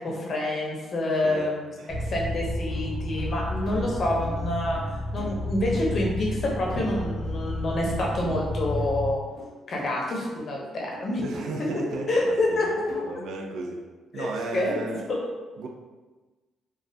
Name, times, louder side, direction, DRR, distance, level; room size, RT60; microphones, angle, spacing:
voice 1, 0.0-1.7 2.1-4.8 5.1-9.2 9.7-11.2 12.1-12.7 14.1-14.3 14.5-14.7 15.1-15.2, left 1 dB, 50° left, -2 dB, 0.7 m, -27 dB
voice 2, 1.2-2.0 11.2-12.8 13.0-13.8 14.1-15.1 15.6-15.7, right 3 dB, 75° right, 3 dB, 0.4 m, -34 dB
sound 1, 1.9-9.1, left 1 dB, 15° right, 0.7 m, -31 dB
sound 2, 2.7-2.8 3.3-3.4 3.7-4.4 4.8-4.9 5.2-6.4 6.7-7.4 7.8-7.9 8.2-8.4 8.8-8.9 9.4-10.0 10.3-10.5 10.9-11.0 11.3-11.6 11.9-12.1 12.5-12.6 12.9-13.2, equal, 55° right, 1.1 m, -43 dB
3.1 x 2.3 x 2.6 m, 1.3 s
cardioid pair, 90°, 0 cm